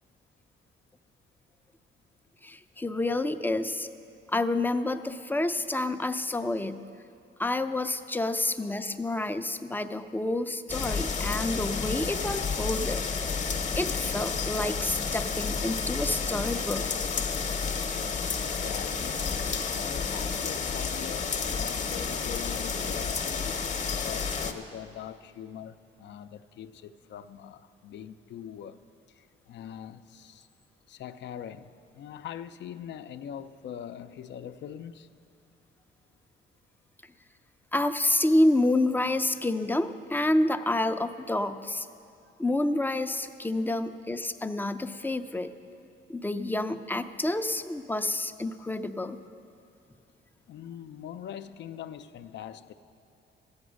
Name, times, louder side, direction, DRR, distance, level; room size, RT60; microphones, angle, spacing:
voice 1, 2.4-3.9 4.3-6.8 7.4-13.0 13.8-16.9 37.7-41.9 42.4-45.5 46.1-49.2, left 2 dB, 10° left, 0.5 m, -28 dB
sound 1, 10.7-24.5, left 5 dB, 35° left, 0.9 m, -31 dB
voice 2, 18.4-19.3 19.7-23.6 24.0-28.8 29.1-30.5 30.9-35.1 50.5-52.7, left 9 dB, 65° left, 0.5 m, -42 dB
13.5 x 8.8 x 6.3 m
cardioid pair, 90°, 20 cm